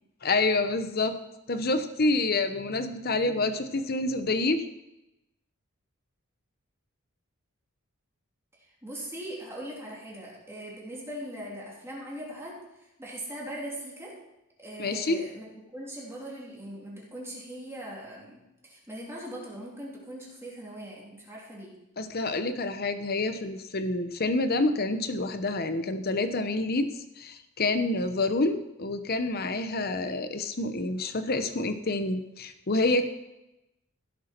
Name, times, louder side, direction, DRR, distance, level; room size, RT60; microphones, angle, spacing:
voice 1, 0.2-1.2 1.5-4.7 14.8-15.2 22.0-26.9 27.2-33.1, left 2 dB, 45° left, 9 dB, 0.9 m, -27 dB
voice 2, 8.6-14.2 14.6-21.7, right 1 dB, 10° right, -4 dB, 3.2 m, -40 dB
16.0 x 8.2 x 4.5 m, 0.92 s
head